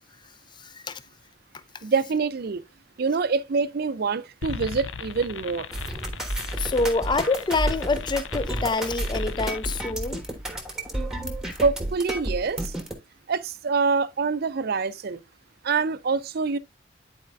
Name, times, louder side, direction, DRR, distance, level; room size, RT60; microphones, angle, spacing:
voice 1, 0.6-1.0 6.6-10.2, left 3 dB, 25° left, 0.4 m, -26 dB
voice 2, 1.8-2.6 3.0-5.7 11.6-12.7 13.3-15.2 15.6-16.6, right 4 dB, 55° right, 0.5 m, -25 dB
sound 1, 4.4-9.9, left 7 dB, 85° left, 0.5 m, -38 dB
sound 2, 5.7-12.9, right 1 dB, 5° right, 1.1 m, -31 dB
10.5 x 4.2 x 2.5 m
head